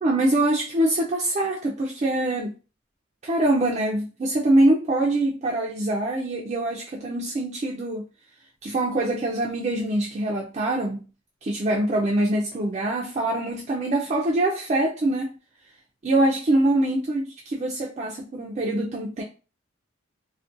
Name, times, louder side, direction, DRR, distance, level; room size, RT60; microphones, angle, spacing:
voice 1, 0.0-2.6 3.2-8.0 8.6-11.0 11.4-15.3 16.0-19.2, right 1 dB, 35° right, 0.3 m, -24 dB
2.4 x 2.1 x 2.5 m
head